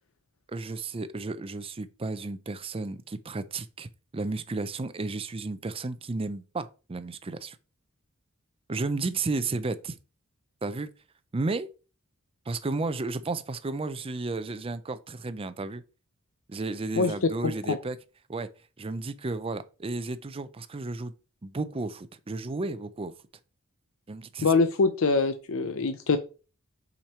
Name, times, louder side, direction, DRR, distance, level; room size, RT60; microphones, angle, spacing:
voice 1, 0.5-7.6 8.7-10.0 10.6-10.9 11.3-11.7 12.5-15.8 16.5-18.0 18.3-18.5 18.8-21.1 21.4-23.1 24.1-24.5, right 3 dB, 25° right, 0.5 m, -33 dB
voice 2, 17.4-17.8 24.4-26.2, left 4 dB, 70° left, 0.6 m, -24 dB
5.8 x 5.2 x 4.3 m
head